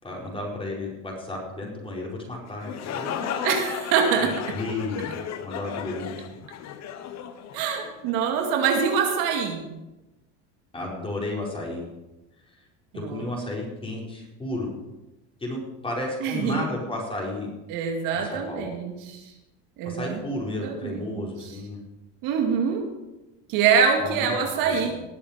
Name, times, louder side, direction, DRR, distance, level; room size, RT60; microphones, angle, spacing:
voice 1, 0.0-3.5 4.2-5.1 5.4-6.1 10.7-11.8 12.9-14.7 15.4-17.5 18.1-18.7 19.8-21.8 24.0-24.9, left 2 dB, 15° left, -3 dB, 4.7 m, -33 dB
sound 1, 2.5-8.2, left 9 dB, 50° left, 1.2 m, -35 dB
voice 2, 3.4-4.6 7.5-9.7 13.0-13.3 16.2-16.6 17.7-19.2 19.8-20.2 20.6-21.2 22.2-22.9 23.5-24.9, right 6 dB, 70° right, 3 dB, 2.3 m, -24 dB
19.5 x 7.3 x 5.1 m, 1.0 s
supercardioid pair, 120°, 35 cm